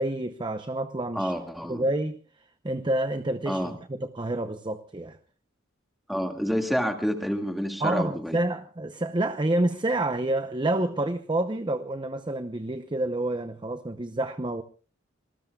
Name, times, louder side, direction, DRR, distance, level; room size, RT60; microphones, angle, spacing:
voice 1, 0.0-1.3 1.7-2.2 2.6-5.2 7.8-14.6, right 1 dB, 25° right, 0.8 m, -28 dB
voice 2, 1.2-1.9 3.5-3.7 6.1-8.4, equal, ahead, 2.0 m, -28 dB
26.5 x 20.0 x 2.4 m
head